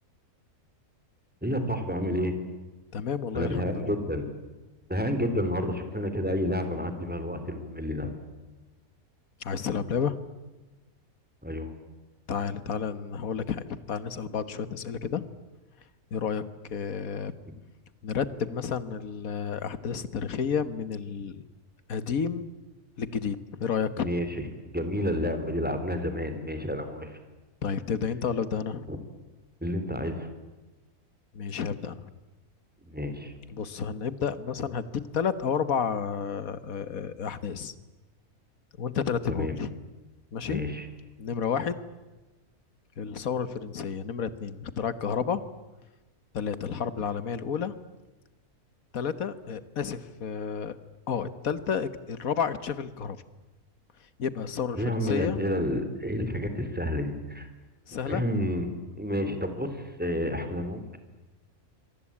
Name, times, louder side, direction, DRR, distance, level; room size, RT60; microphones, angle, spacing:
voice 1, 1.4-2.4 3.3-4.3 4.9-8.1 11.4-11.7 24.0-27.2 28.9-29.0 29.6-30.3 32.8-33.3 39.3-39.6 40.4-40.9 54.7-57.5 58.1-61.0, equal, 5° right, 8 dB, 3.2 m, -30 dB
voice 2, 2.9-4.0 9.4-10.2 12.3-15.2 16.1-17.3 18.0-21.4 21.9-22.5 23.0-24.1 27.6-28.9 31.3-32.0 33.5-37.7 38.8-39.7 40.3-40.6 41.2-41.8 43.0-45.4 46.3-47.7 48.9-50.7 51.1-53.2 54.2-55.4 57.9-58.2, left 7 dB, 65° left, 14 dB, 1.7 m, -31 dB
27.0 x 23.0 x 8.6 m, 1.2 s
omnidirectional pair, 1.6 m